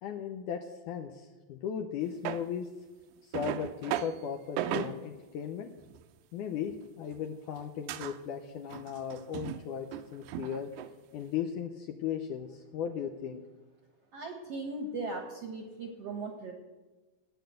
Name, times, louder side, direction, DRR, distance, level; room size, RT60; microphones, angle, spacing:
voice 1, 0.0-2.7 3.2-5.7 6.3-10.7 11.1-13.4, left 8 dB, 75° left, 5 dB, 1.9 m, -37 dB
sound 1, 2.3-2.5 3.3-4.2 4.6-5.0 5.8-6.1 6.7-7.2 7.6-7.7 7.9-8.2 8.7-9.6 9.9-10.9, right 11 dB, 90° right, 2.6 m, -36 dB
voice 2, 14.1-16.5, right 3 dB, 60° right, 3 dB, 1.6 m, -38 dB
14.0 x 9.0 x 7.9 m, 1.2 s
omnidirectional pair, 4.4 m